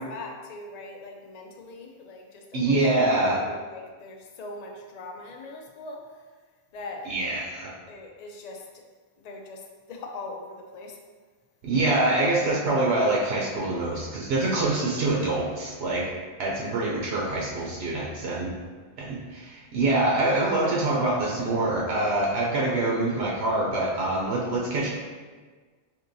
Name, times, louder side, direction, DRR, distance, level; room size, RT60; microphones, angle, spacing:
voice 1, 0.0-6.2 6.7-7.1 7.9-8.8 9.2-11.0 16.4-16.5, left 2 dB, 55° left, 1 dB, 0.5 m, -41 dB
voice 2, 2.5-3.5 7.1-7.7 11.6-16.1 16.4-18.5 19.0-24.9, right 2 dB, 75° right, -4 dB, 0.8 m, -25 dB
4.4 x 2.8 x 2.6 m, 1.4 s
omnidirectional pair, 1.1 m